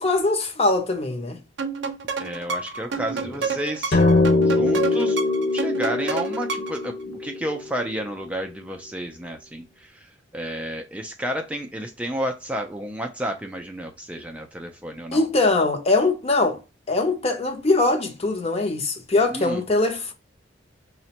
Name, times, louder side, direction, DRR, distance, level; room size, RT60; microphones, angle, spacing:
voice 1, 0.0-1.4 15.1-16.6 16.9-20.1, left 2 dB, 35° left, 0.6 m, -22 dB
sound 1, 1.6-6.9, right 4 dB, 65° right, 0.5 m, -30 dB
voice 2, 2.2-4.0 4.4-5.2 5.5-15.3 19.3-19.6, right 1 dB, 5° right, 0.3 m, -31 dB
sound 2, 3.9-8.5, left 2 dB, 60° left, 1.1 m, -22 dB
4.9 x 2.1 x 2.8 m
head